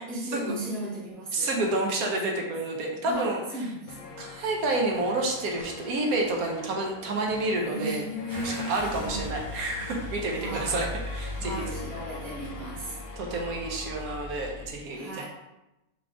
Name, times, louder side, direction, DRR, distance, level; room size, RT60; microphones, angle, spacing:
voice 1, 0.0-1.9 3.1-3.2 3.5-4.2 7.7-9.4 10.3-10.9 11.3-13.0 14.9-15.3, right 1 dB, ahead, -5 dB, 0.6 m, -36 dB
voice 2, 1.3-3.7 4.2-8.0 8.4-11.5 13.2-15.3, right 2 dB, 70° right, 1 dB, 1.2 m, -29 dB
sound 1, 3.9-14.2, left 6 dB, 80° left, 1.1 m, -45 dB
Car / Engine starting, 8.3-14.7, left 1 dB, 30° right, 1.5 m, -39 dB
3.8 x 3.7 x 3.4 m, 0.94 s
omnidirectional pair, 1.6 m